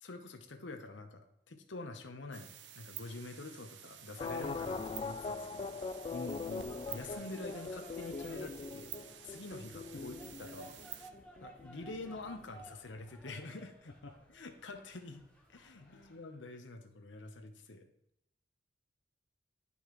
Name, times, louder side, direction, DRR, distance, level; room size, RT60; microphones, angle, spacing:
voice 1, 0.0-5.8 6.9-9.0 9.2-10.8 11.4-13.9 14.3-15.2 15.5-17.9, left 2 dB, 90° left, 6 dB, 0.9 m, -47 dB
sound 1, 2.3-11.1, right 11 dB, 70° right, 0.6 m, -51 dB
sound 2, 4.2-12.7 13.0-13.1, left 4 dB, 30° left, 0.3 m, -42 dB
voice 2, 6.1-6.7 15.7-16.3, left 3 dB, 70° left, 2 dB, 0.7 m, -47 dB
sound 3, 6.4-16.2, right 1 dB, 5° left, 1.2 m, -58 dB
10.5 x 5.5 x 3.1 m, 0.78 s
head